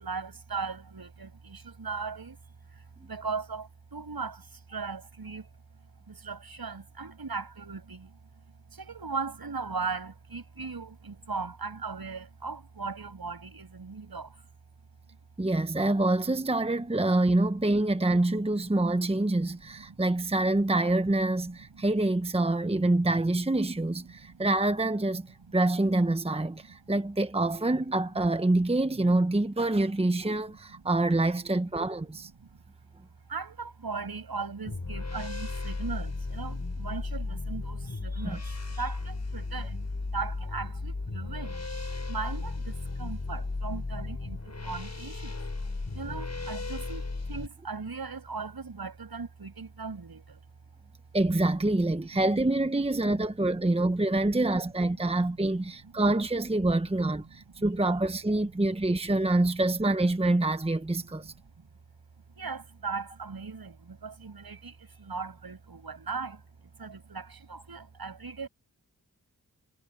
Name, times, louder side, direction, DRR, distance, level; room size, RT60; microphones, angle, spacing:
voice 1, 0.0-2.4 2.7-5.5 6.1-8.2 8.7-14.4 17.2-17.3 17.7-17.8 18.3-18.4 19.8-20.0 21.7-21.9 22.6-22.8 24.2-24.5 25.5-25.6 26.7-26.8 32.4-32.6 33.3-39.9 40.1-41.6 42.1-45.4 45.9-50.4 55.8-55.9 57.6-57.7 61.6-61.7 62.4-66.4 66.8-68.5, right 4 dB, 70° right, 7.3 m, -38 dB
voice 2, 15.4-25.3 25.5-32.3 38.2-38.4 51.1-61.3, right 2 dB, 15° right, 1.1 m, -26 dB
sound 1, 34.6-47.5, left 3 dB, 45° left, 6.6 m, -35 dB
wide cardioid pair, 60°, 38 cm